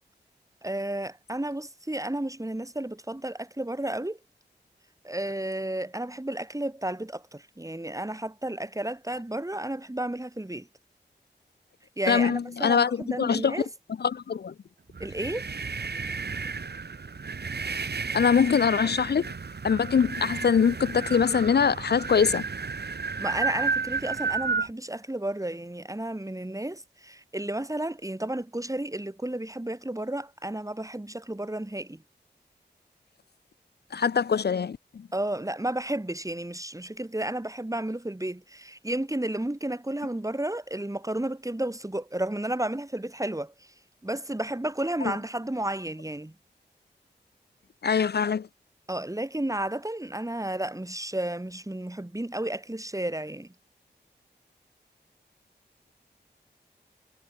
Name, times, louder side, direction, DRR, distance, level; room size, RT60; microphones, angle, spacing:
voice 1, 0.6-4.2 5.0-10.7 12.0-13.7 15.0-15.5 23.2-32.0 35.1-43.5 44.0-46.3 48.9-53.5, right 1 dB, 20° right, 3.2 m, -32 dB
voice 2, 12.1-13.6 14.0-14.5 18.1-19.3 19.6-22.4 33.9-35.1 45.0-45.1 47.8-48.5, left 6 dB, 65° left, 0.6 m, -23 dB
sound 1, 14.9-24.7, right 4 dB, 65° right, 1.8 m, -32 dB
cardioid pair, 45°, 18 cm